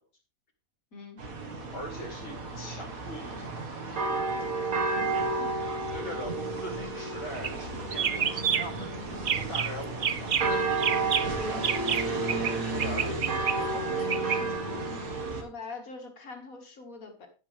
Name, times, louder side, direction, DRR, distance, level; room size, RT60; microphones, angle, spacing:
sound 1, 1.2-15.4, right 3 dB, 85° right, 2.2 m, -32 dB
voice 1, 1.7-4.0 5.6-10.3 11.3-11.6 11.9-14.6, right 1 dB, 60° left, -1 dB, 3.3 m, -41 dB
voice 2, 4.7-5.6 11.3-11.6 12.3-12.5 15.4-17.3, left 4 dB, 85° left, 3 dB, 2.5 m, -44 dB
sound 2, 7.3-7.6 7.9-8.8 9.2-9.7 10.0-12.5 12.8-14.4, right 7 dB, 45° right, 0.7 m, -29 dB
10.5 x 9.9 x 3.4 m, 0.35 s
omnidirectional pair, 1.4 m